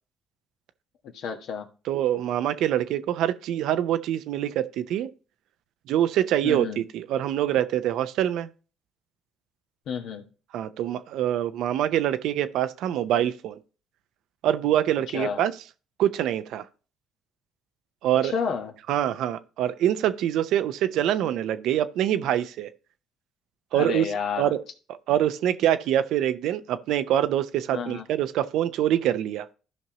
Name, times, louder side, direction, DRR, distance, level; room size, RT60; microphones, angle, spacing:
voice 1, 1.1-1.7 6.4-6.8 9.9-10.2 15.1-15.4 18.2-18.7 23.7-24.5 27.7-28.0, left 6 dB, 70° left, 1.3 m, -30 dB
voice 2, 1.9-5.1 5.9-8.5 10.5-13.6 14.4-15.5 16.0-16.6 18.0-18.3 18.9-22.7 23.7-24.1 24.4-24.6 25.1-29.5, right 11 dB, 75° right, 0.6 m, -25 dB
14.0 x 5.4 x 2.9 m
supercardioid pair, 65°, 0 cm